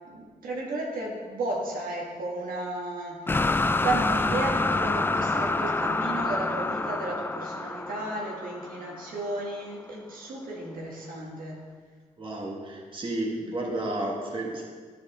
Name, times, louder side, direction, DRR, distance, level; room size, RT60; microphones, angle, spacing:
voice 1, 0.1-11.6 13.2-13.5, right 2 dB, 85° right, -3 dB, 1.7 m, -33 dB
sound 1, 3.3-9.3, left 3 dB, 15° left, 0.3 m, -27 dB
voice 2, 12.2-14.7, right 1 dB, 35° right, -2 dB, 1.6 m, -32 dB
11.0 x 6.2 x 3.7 m, 1.5 s
cardioid pair, 75°, 14 cm